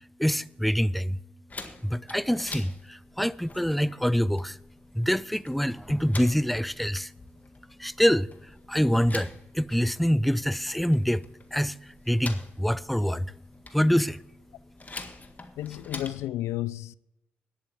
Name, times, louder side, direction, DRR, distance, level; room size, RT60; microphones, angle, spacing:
voice 1, 0.2-1.2 1.8-4.6 4.9-7.1 7.8-8.3 8.7-11.2 11.5-11.8 12.1-13.3 13.7-14.2, equal, ahead, 0.4 m, -25 dB
sound 1, 1.5-16.3, left 3 dB, 35° left, 1.7 m, -46 dB
voice 2, 15.6-16.9, left 14 dB, 85° left, 0.3 m, -32 dB
10.5 x 7.8 x 7.3 m
supercardioid pair, 50°, 5 cm